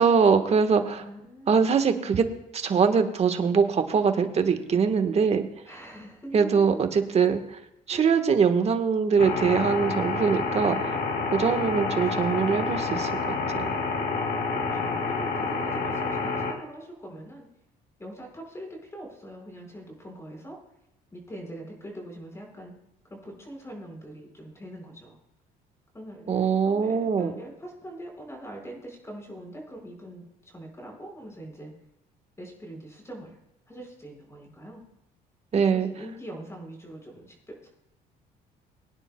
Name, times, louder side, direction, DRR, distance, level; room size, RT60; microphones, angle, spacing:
voice 1, 0.0-1.0 1.5-2.3 2.5-5.4 6.3-7.4 7.9-11.0 11.3-13.7 26.3-27.3 35.5-35.9, right 6 dB, 40° right, 8 dB, 1.3 m, -23 dB
voice 2, 1.0-1.6 5.7-6.8 7.9-8.1 12.0-12.3 14.7-17.5 18.0-20.6 21.1-22.7 23.1-25.2 25.9-31.7 32.4-33.4 33.7-34.8 35.5-37.7, right 1 dB, 15° left, 1 dB, 4.8 m, -43 dB
sound 1, 9.2-16.5, left 4 dB, 60° left, 2.4 m, -28 dB
23.0 x 10.0 x 2.3 m, 0.88 s
cardioid pair, 110°, 17 cm